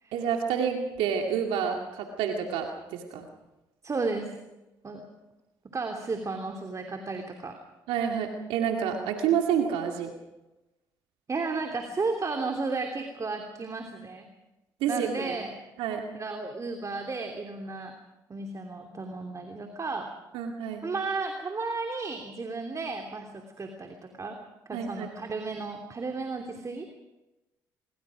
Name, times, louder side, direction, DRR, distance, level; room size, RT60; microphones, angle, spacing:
voice 1, 0.1-3.3 7.9-10.1 14.8-15.3 15.8-16.1 20.3-20.9 24.7-25.1, right 8 dB, 75° right, 2 dB, 2.4 m, -29 dB
voice 2, 3.8-4.4 4.8-5.2 5.6-7.6 11.3-14.3 14.9-15.5 16.1-17.9 18.3-20.1 20.8-24.4 24.7-26.9, right 3 dB, 35° right, 3 dB, 3.1 m, -33 dB
25.5 x 23.5 x 5.1 m, 1.0 s
hypercardioid pair, 55°, 9 cm